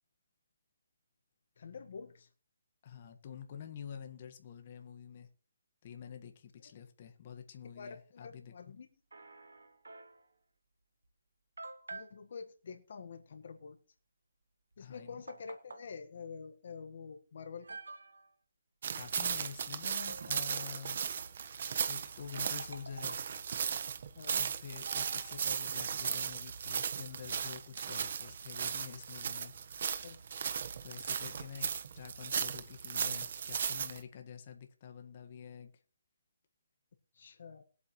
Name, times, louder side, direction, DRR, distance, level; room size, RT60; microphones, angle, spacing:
voice 1, 1.6-2.3 7.8-8.9 11.9-13.8 14.8-17.8 24.2-24.4 30.0-30.2 37.2-37.6, left 5 dB, 60° left, 1.5 m, -47 dB
voice 2, 2.8-5.3 5.8-8.7 14.8-15.2 19.0-21.0 21.9-23.2 24.4-29.5 30.8-35.7, left 8 dB, 40° left, 1.6 m, -48 dB
sound 1, 9.1-10.3 11.0-11.1 11.6-12.2 14.7-14.8 15.3-15.9 16.9-17.0 17.6-18.3 20.1-20.9 22.4-23.4 24.8-25.7, right 3 dB, 90° right, 1.8 m, -49 dB
sound 2, 18.8-34.0, right 7 dB, 55° right, 1.3 m, -37 dB
21.0 x 8.3 x 3.2 m
hypercardioid pair, 155°, 0 cm